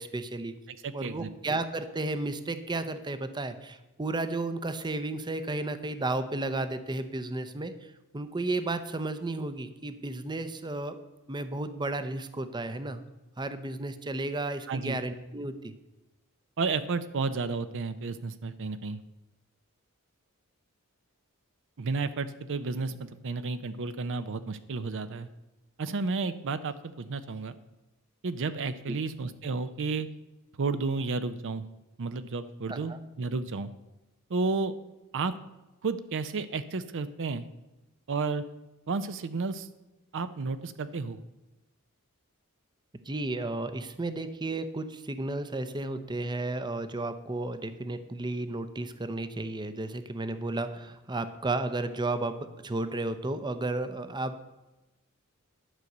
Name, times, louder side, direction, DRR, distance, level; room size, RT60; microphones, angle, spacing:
voice 1, 0.0-0.5 0.9-11.0 11.3-13.0 13.4-15.7 28.9-29.0 32.7-33.0 43.1-54.4, right 2 dB, 20° right, 11 dB, 0.6 m, -33 dB
voice 2, 0.7-1.3 14.7-15.0 16.6-19.0 21.8-25.3 25.8-27.5 28.2-30.1 30.6-31.6 32.0-33.7 34.3-34.7 35.1-35.3 35.8-37.5 38.1-38.4 38.9-39.7 40.1-41.2, right 4 dB, 60° right, 12 dB, 0.5 m, -32 dB
11.5 x 5.2 x 7.9 m, 1.0 s
head